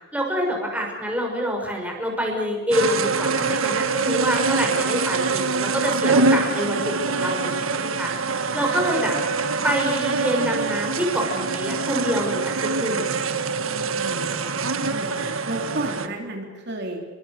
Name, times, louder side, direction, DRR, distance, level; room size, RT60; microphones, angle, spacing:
voice 1, 0.1-8.1 8.5-9.2 9.6-13.2, equal, 5° right, 0 dB, 6.3 m, -26 dB
sound 1, 2.7-16.1, right 4 dB, 85° right, 1.6 m, -24 dB
voice 2, 13.7-17.0, right 2 dB, 55° right, 1 dB, 3.4 m, -33 dB
29.5 x 24.5 x 6.7 m, 1.4 s
head